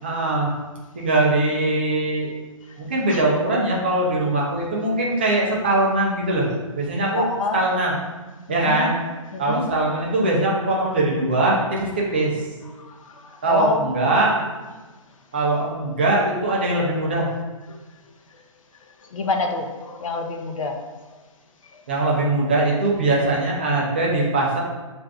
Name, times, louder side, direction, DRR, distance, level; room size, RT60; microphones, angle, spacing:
voice 1, 0.0-0.5 0.9-2.3 2.8-6.5 6.8-7.2 7.5-8.0 8.5-9.0 9.4-12.4 13.4-14.4 15.3-17.3 21.9-24.6, right 2 dB, 20° right, -3 dB, 0.4 m, -21 dB
voice 2, 7.2-7.6 8.6-8.9 9.3-9.6 12.8-14.3 19.1-20.8, left 3 dB, 70° left, 4 dB, 0.6 m, -27 dB
6.1 x 2.5 x 2.3 m, 1.2 s
hypercardioid pair, 175°, 17 cm